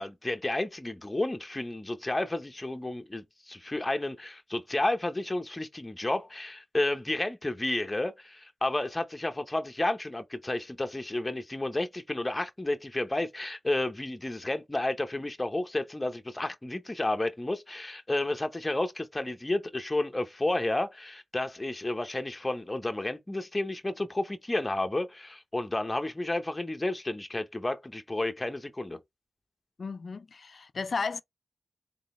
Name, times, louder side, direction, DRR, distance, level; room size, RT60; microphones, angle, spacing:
voice 1, 0.0-29.0, left 2 dB, 25° left, 0.8 m, -31 dB
voice 2, 29.8-31.2, left 5 dB, 70° left, 0.4 m, -34 dB
3.9 x 3.8 x 3.0 m
cardioid pair, 45°, 0 cm